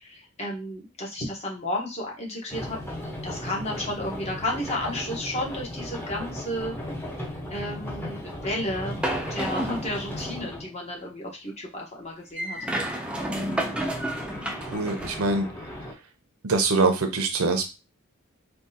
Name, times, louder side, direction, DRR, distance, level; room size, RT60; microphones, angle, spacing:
voice 1, 0.0-2.8 3.2-6.7 7.5-9.0 9.3-12.6, left 1 dB, 30° left, -2 dB, 1.0 m, -32 dB
sound 1, 2.5-10.7 12.9-15.9, left 1 dB, 10° left, 0.7 m, -36 dB
sound 2, 9.0-10.5 12.4-15.2, right 1 dB, 5° right, 0.4 m, -31 dB
voice 2, 14.6-15.9 16.4-17.6, right 3 dB, 90° right, 6 dB, 0.7 m, -24 dB
3.6 x 2.3 x 2.7 m, 0.28 s
head